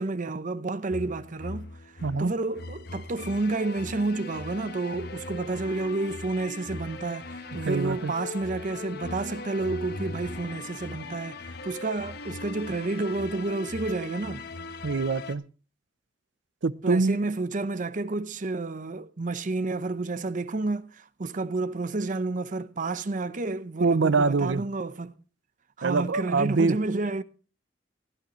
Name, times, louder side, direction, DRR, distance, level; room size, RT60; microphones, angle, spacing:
voice 1, 0.0-1.9 2.2-14.5 16.8-25.2 25.8-27.2, right 3 dB, 45° right, 0.7 m, -30 dB
sound 1, 0.9-15.3, left 3 dB, 60° left, 1.1 m, -39 dB
voice 2, 2.0-2.3 7.6-8.1 14.8-15.4 16.6-17.2 23.8-24.6 25.8-26.8, right 4 dB, 80° right, 0.6 m, -24 dB
16.5 x 11.5 x 3.0 m
head